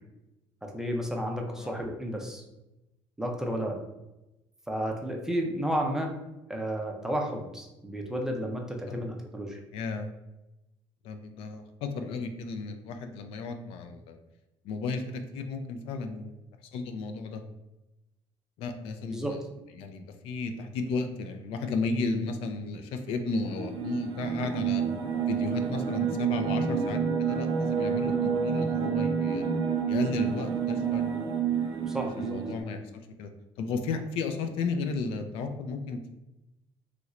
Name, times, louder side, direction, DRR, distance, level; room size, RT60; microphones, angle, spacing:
voice 1, 0.6-2.4 3.2-3.8 4.7-6.1 6.5-9.6 19.1-19.3 31.9-32.4, equal, 5° right, 1 dB, 0.4 m, -32 dB
voice 2, 9.7-10.1 11.0-14.2 14.6-16.3 16.7-17.4 18.6-19.4 19.8-24.8 25.3-29.5 29.9-31.1 31.8-33.3 33.6-36.1, left 4 dB, 70° left, 6 dB, 0.4 m, -34 dB
sound 1, 23.4-32.6, right 7 dB, 70° right, 0.6 m, -29 dB
3.1 x 2.9 x 2.4 m, 0.96 s
cardioid pair, 150°, 10 cm